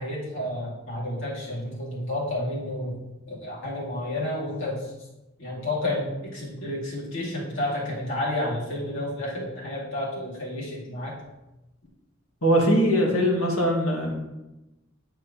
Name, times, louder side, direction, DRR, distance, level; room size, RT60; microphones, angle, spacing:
voice 1, 0.0-2.9 3.3-4.9 5.4-11.1, left 1 dB, 65° left, -5 dB, 2.4 m, -30 dB
voice 2, 12.4-14.1, equal, 85° left, -2 dB, 1.8 m, -21 dB
9.0 x 4.8 x 2.9 m, 0.99 s
head